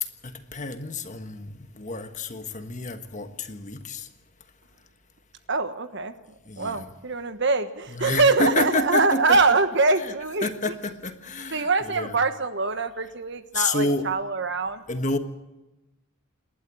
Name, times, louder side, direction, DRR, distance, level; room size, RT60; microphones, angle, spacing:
voice 1, 0.0-4.1 6.4-6.9 7.9-9.6 10.0-10.1 10.4-12.2 13.5-14.1 14.9-15.2, left 3 dB, 35° left, 1.4 m, -29 dB
voice 2, 5.5-6.1 6.6-10.5 11.5-14.8, right 3 dB, 55° right, 1.3 m, -23 dB
28.0 x 12.0 x 8.5 m
head